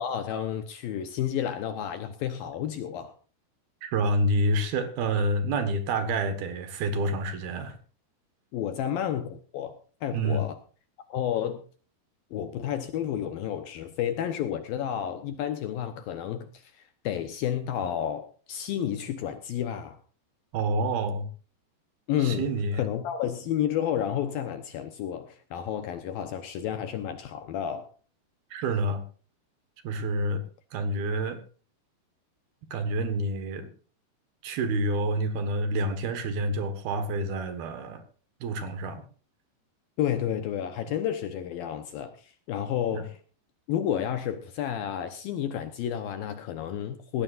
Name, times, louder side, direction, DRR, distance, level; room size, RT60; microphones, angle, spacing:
voice 1, 0.0-3.1 8.5-10.6 11.1-11.6 12.3-20.0 22.1-27.9 40.0-43.2 43.7-47.2, left 10 dB, 70° left, 9 dB, 2.3 m, -31 dB
voice 2, 3.8-7.8 10.1-10.4 20.5-21.3 22.2-22.8 28.5-29.0 29.8-30.4 30.7-31.4 32.7-33.7 34.4-38.0 38.4-39.0 42.9-43.0, right 1 dB, 65° right, 9 dB, 3.2 m, -28 dB
19.0 x 15.5 x 2.5 m, 0.38 s
omnidirectional pair, 5.0 m